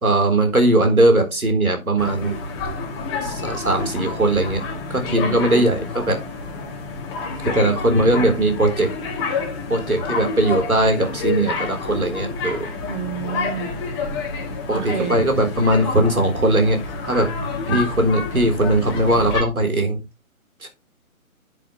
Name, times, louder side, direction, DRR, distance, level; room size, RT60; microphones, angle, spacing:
voice 1, 0.0-2.4 3.2-4.6 4.9-6.2 7.5-8.9 9.7-12.7 14.7-16.8 17.0-17.3 17.7-20.0 20.6-20.7, right 1 dB, 75° right, 4.2 m, -19 dB
sound 1, 2.0-19.4, left 4 dB, 20° left, 2.0 m, -29 dB
voice 2, 5.1-5.7 12.8-13.7 14.7-15.1, right 6 dB, 55° right, 3.7 m, -29 dB
10.5 x 8.0 x 3.3 m
figure-of-eight pair, 145°, 43 cm